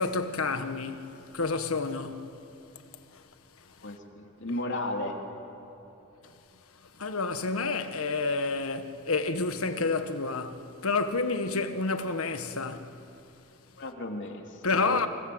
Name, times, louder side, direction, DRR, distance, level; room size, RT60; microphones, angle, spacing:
voice 1, 0.0-2.2 7.0-12.9 14.6-15.1, left 3 dB, 80° left, 1.5 m, -29 dB
voice 2, 3.8-5.2 13.8-15.1, left 1 dB, 60° left, 3.1 m, -34 dB
29.0 x 24.0 x 7.9 m
head